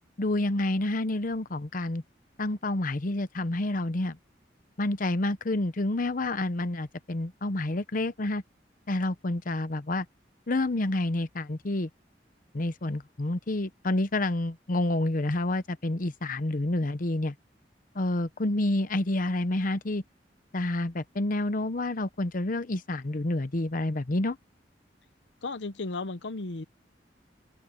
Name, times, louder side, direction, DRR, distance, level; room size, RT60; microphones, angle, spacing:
voice 1, 0.2-2.0 2.4-4.2 4.8-8.4 8.9-10.1 10.5-11.9 12.5-17.3 17.9-20.0 20.5-24.4, left 2 dB, 50° left, 0.9 m, -28 dB
voice 2, 25.4-26.6, left 3 dB, 80° left, 0.9 m, -34 dB
open air
head